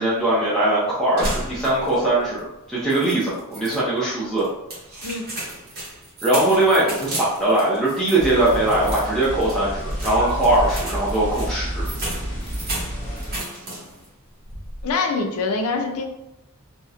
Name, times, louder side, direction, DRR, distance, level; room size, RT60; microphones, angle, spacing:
voice 1, 0.0-4.4 6.2-11.9, right 1 dB, ahead, -9 dB, 0.5 m, -21 dB
sound 1, 1.2-2.1 2.4-2.5 2.9-3.8 4.4-14.1 14.4-14.9, right 1 dB, 45° right, 0.8 m, -34 dB
sound 2, 8.2-13.4, equal, 30° left, 0.8 m, -30 dB
voice 2, 14.8-16.0, left 4 dB, 75° left, 3 dB, 0.4 m, -24 dB
2.8 x 2.0 x 2.4 m, 0.90 s
head